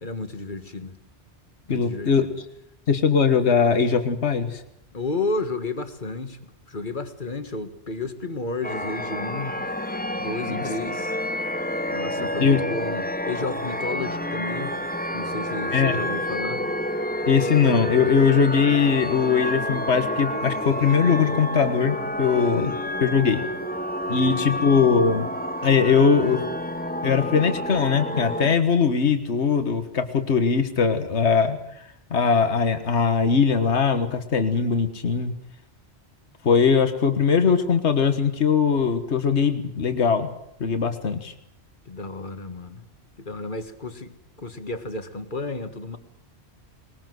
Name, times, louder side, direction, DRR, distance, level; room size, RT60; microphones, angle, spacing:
voice 1, 0.0-1.0 1.7-2.3 4.9-6.4 6.7-9.7 10.2-11.2 11.9-14.8 15.1-16.6 41.9-42.8 43.2-44.1 44.4-46.0, left 3 dB, 45° left, 9 dB, 1.9 m, -32 dB
voice 2, 1.7-2.3 2.9-4.6 10.5-10.6 12.2-12.6 15.7-16.0 17.3-22.7 23.0-23.4 24.1-25.3 25.6-26.4 27.0-31.6 32.1-35.3 36.4-40.3 40.6-41.3, left 6 dB, 70° left, 8 dB, 1.8 m, -21 dB
sound 1, 8.6-28.5, left 1 dB, 10° left, 1.1 m, -29 dB
21.0 x 20.5 x 7.8 m, 0.79 s
omnidirectional pair, 1.2 m